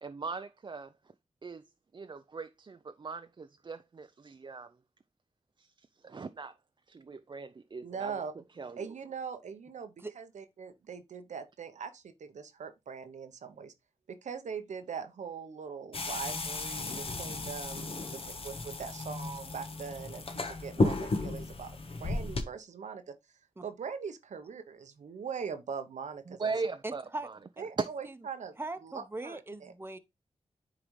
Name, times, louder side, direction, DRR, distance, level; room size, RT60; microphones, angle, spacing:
voice 1, 0.0-0.9 1.4-1.6 1.9-4.8 5.6-6.6 6.9-8.1 8.6-8.9 26.3-27.4 27.8-27.9, right 4 dB, 40° right, 0.4 m, -39 dB
voice 2, 7.8-8.3 8.8-13.7 14.1-23.1 23.6-26.4 27.6-28.6 28.8-29.7, right 6 dB, 80° right, 0.8 m, -41 dB
sound 1, 15.9-22.4, left 2 dB, 50° left, 1.1 m, -34 dB
voice 3, 26.8-27.3 27.6-27.7 28.6-30.0, right 2 dB, 20° right, 0.9 m, -40 dB
9.8 x 3.8 x 3.1 m
cardioid pair, 45°, 12 cm